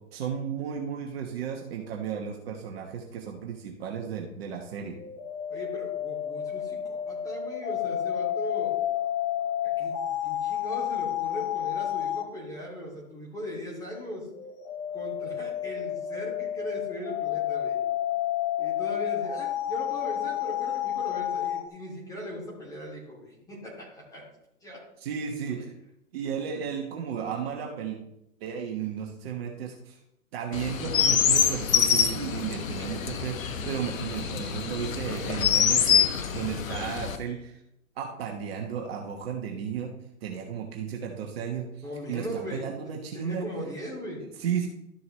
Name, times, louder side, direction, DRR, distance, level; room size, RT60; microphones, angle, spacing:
voice 1, 0.1-5.0 25.0-25.7 26.1-28.0 28.4-30.0 30.3-37.6 38.0-39.9 40.2-43.4 44.4-44.7, right 7 dB, 40° right, 1 dB, 1.3 m, -34 dB
sound 1, 5.0-12.3 14.3-21.6, left 11 dB, 30° left, 1.0 m, -30 dB
voice 2, 5.5-8.8 9.8-14.3 14.9-17.8 18.6-24.3 24.6-24.8 25.2-25.6 41.8-42.7 43.1-44.2, equal, 10° left, -4 dB, 2.8 m, -39 dB
Chirp tweet, 30.5-37.2, left 8 dB, 60° left, 1.1 m, -25 dB
12.5 x 7.0 x 3.2 m, 0.84 s
hypercardioid pair, 135°, 44 cm